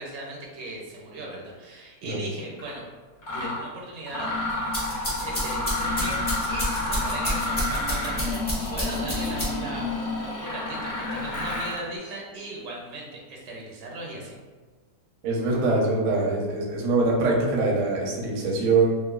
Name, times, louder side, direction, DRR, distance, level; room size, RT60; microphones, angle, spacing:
voice 1, 0.0-2.8 3.3-4.3 5.1-8.4 8.7-14.4, right 2 dB, 85° right, -2 dB, 1.3 m, -38 dB
Mechanisms, 2.6-2.7 3.2-3.6 4.0-11.9, left 2 dB, 60° left, 0.8 m, -30 dB
sound 1, 4.5-9.8, equal, 35° left, 0.4 m, -31 dB
voice 2, 15.2-18.9, right 3 dB, 70° right, -2 dB, 0.8 m, -23 dB
3.0 x 2.1 x 2.2 m, 1.4 s
omnidirectional pair, 1.8 m